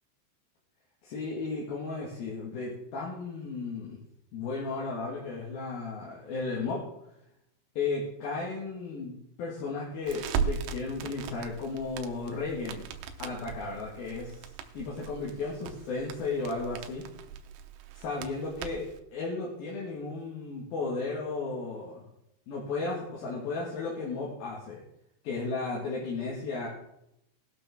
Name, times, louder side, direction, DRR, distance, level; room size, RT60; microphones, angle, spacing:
voice 1, 1.0-4.0 4.3-6.8 7.8-12.9 13.2-14.5 14.7-17.0 17.9-18.9 19.1-22.0 22.5-24.8 25.2-26.7, left 3 dB, 60° left, -4 dB, 3.2 m, -34 dB
Crackle, 10.1-19.0, right 7 dB, 90° right, 3.4 m, -38 dB
20.0 x 6.8 x 3.6 m, 0.80 s
omnidirectional pair, 5.5 m